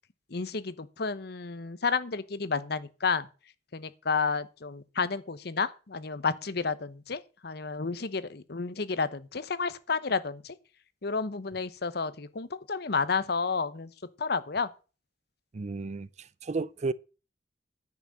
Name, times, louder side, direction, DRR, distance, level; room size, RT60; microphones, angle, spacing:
voice 1, 0.3-3.3 3.7-10.5 11.0-13.9 14.2-14.7, left 4 dB, 60° left, 0.9 m, -31 dB
voice 2, 15.5-16.1 16.4-16.9, right 3 dB, 40° right, 0.4 m, -32 dB
10.5 x 6.0 x 7.4 m
head